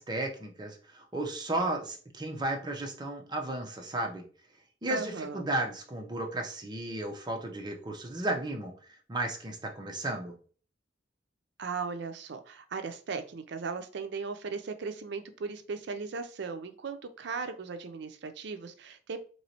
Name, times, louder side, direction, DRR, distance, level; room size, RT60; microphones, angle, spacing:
voice 1, 0.0-4.2 4.8-8.7 9.1-10.3, right 1 dB, 25° right, 2 dB, 0.7 m, -34 dB
voice 2, 4.9-5.5 11.6-19.2, right 4 dB, 65° right, 9 dB, 0.5 m, -37 dB
3.1 x 2.9 x 2.8 m, 0.41 s
head